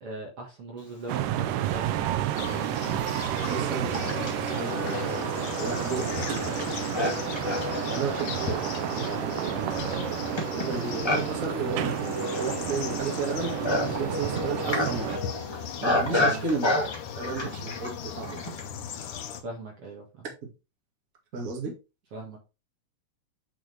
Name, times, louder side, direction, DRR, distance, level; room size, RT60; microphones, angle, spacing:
voice 1, 0.0-2.2 3.4-3.7 6.0-6.1 15.6-15.7 16.1-16.5 19.4-20.3 22.1-22.4, right 2 dB, 50° right, 2.4 m, -40 dB
sound 1, 1.1-15.2, right 12 dB, 85° right, 2.3 m, -31 dB
Livestock farm animals working animals, 1.9-2.0 2.8-18.7, left 1 dB, 10° left, 1.8 m, -32 dB
sound 2, 2.4-19.4, left 8 dB, 80° left, 2.6 m, -38 dB
voice 2, 3.5-5.3 5.6-7.2 7.9-8.7 9.0-15.2 15.8-16.7 17.2-18.5 21.3-21.7, right 4 dB, 30° right, 2.1 m, -34 dB
7.9 x 6.3 x 3.4 m
omnidirectional pair, 3.7 m